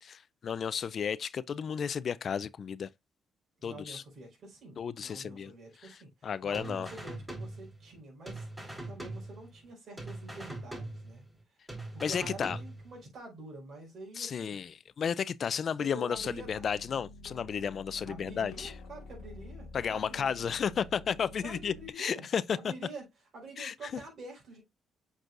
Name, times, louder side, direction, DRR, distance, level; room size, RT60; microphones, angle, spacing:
voice 1, 0.0-2.9 3.6-4.0 4.8-5.5 5.8-6.9 12.0-12.6 14.2-18.8 19.7-22.7 23.6-24.0, left 7 dB, 50° left, 0.4 m, -33 dB
voice 2, 3.6-8.5 8.9-14.6 15.6-16.6 18.1-20.6 21.4-22.2 22.6-23.0 23.3-24.6, right 2 dB, 55° right, 4.8 m, -47 dB
sound 1, 6.5-8.0 8.3-9.7 10.0-11.4 11.7-13.0, right 2 dB, 10° right, 4.4 m, -42 dB
sound 2, 16.1-21.9, left 2 dB, 85° left, 0.8 m, -49 dB
7.7 x 6.1 x 2.5 m
cardioid pair, 90°, 0 cm